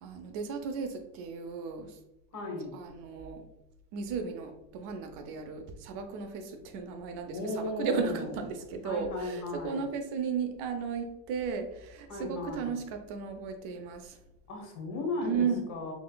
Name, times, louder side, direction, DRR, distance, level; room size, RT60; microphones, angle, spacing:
voice 1, 0.0-2.0 2.7-3.5 3.9-14.2 15.2-15.7, right 5 dB, 75° right, 7 dB, 0.7 m, -35 dB
voice 2, 2.3-2.8 7.3-8.3 8.8-9.9 12.1-12.8 14.5-15.9, left 2 dB, 45° left, 1 dB, 1.2 m, -36 dB
4.0 x 3.0 x 2.3 m, 0.91 s
cardioid pair, 120°, 41 cm